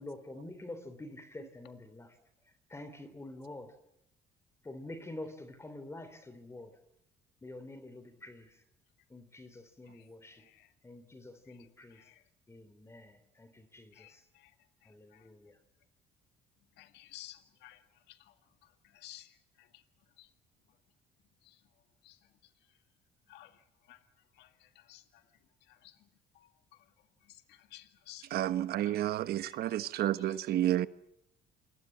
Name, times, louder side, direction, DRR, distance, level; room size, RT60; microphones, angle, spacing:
voice 1, 0.0-2.2 2.7-3.7 4.6-6.8 7.4-8.6 9.1-10.4 10.8-12.1 12.5-14.2 14.8-15.6, left 2 dB, 15° left, 3.2 m, -47 dB
voice 2, 10.3-10.7 11.5-12.2 13.9-14.5 14.8-15.3 16.8-18.3 18.6-19.8 20.2-20.3 21.4-21.6 22.0-22.2 23.3-24.0 24.3-25.2 25.7-26.0 26.3-26.8 27.2-28.3 28.9-29.0 29.5-29.6 29.8-30.2, left 15 dB, 85° left, 1.9 m, -56 dB
voice 3, 28.3-30.9, right 13 dB, 70° right, 1.2 m, -30 dB
28.5 x 22.0 x 7.4 m
cardioid pair, 110°, 17 cm